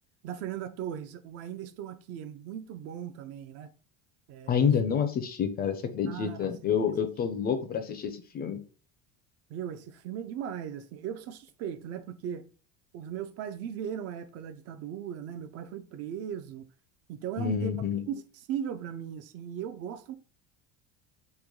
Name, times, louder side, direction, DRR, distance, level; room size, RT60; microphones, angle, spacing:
voice 1, 0.2-3.7 4.3-4.7 6.1-6.5 9.5-12.5 12.9-16.7 17.1-20.1, right 9 dB, 50° right, 0.4 m, -38 dB
voice 2, 4.5-8.6 17.4-18.0, left 7 dB, 30° left, 0.4 m, -28 dB
3.1 x 2.2 x 3.6 m
supercardioid pair, 125°, 33 cm